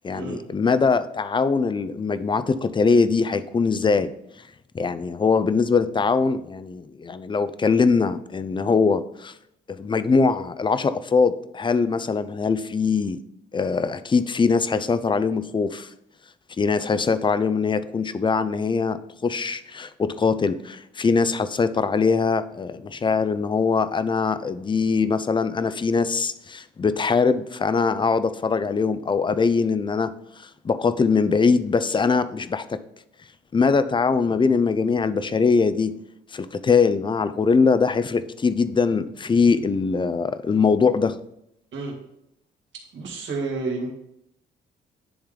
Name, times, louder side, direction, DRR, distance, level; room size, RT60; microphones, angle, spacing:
voice 1, 0.0-4.1 4.7-9.3 9.7-13.2 13.5-15.9 16.6-30.1 30.4-32.8 33.5-36.0 36.3-41.2, left 5 dB, 25° left, 0.4 m, -22 dB
voice 2, 42.9-43.9, right 3 dB, 70° right, 1.9 m, -30 dB
10.0 x 3.4 x 3.7 m
cardioid pair, 90°, 20 cm